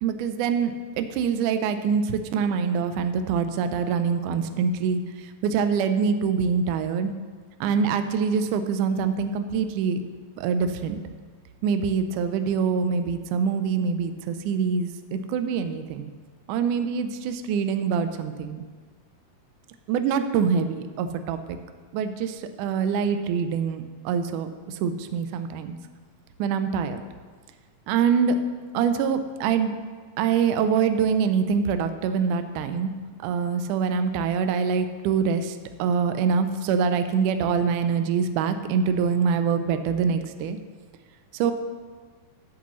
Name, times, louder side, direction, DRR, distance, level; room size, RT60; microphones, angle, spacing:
voice 1, 0.0-5.0 5.4-7.1 7.6-10.0 10.4-11.0 11.6-16.1 16.5-18.6 19.9-21.4 21.9-24.5 24.8-25.8 26.4-27.0 27.9-28.4 28.7-29.7 30.2-32.9 33.2-35.5 35.8-40.6 41.3-41.5, right 6 dB, 85° right, 9 dB, 1.8 m, -24 dB
13.5 x 8.6 x 3.1 m, 1.5 s
omnidirectional pair, 4.2 m